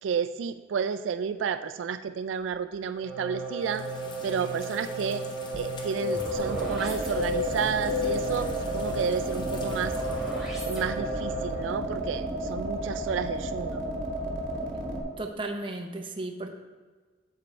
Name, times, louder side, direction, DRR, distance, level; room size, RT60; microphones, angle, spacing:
voice 1, 0.0-3.8 4.2-5.2 5.5-10.0 10.6-13.8, right 6 dB, 85° right, 10 dB, 0.3 m, -31 dB
sound 1, 2.9-11.7, right 3 dB, ahead, 2.3 m, -35 dB
sound 2, 3.8-10.4, left 5 dB, 25° left, 0.6 m, -36 dB
sound 3, 6.3-15.0, right 1 dB, 50° right, 1.4 m, -33 dB
voice 2, 15.2-16.5, right 2 dB, 25° right, 3 dB, 0.7 m, -34 dB
8.2 x 7.6 x 3.2 m, 1.4 s
head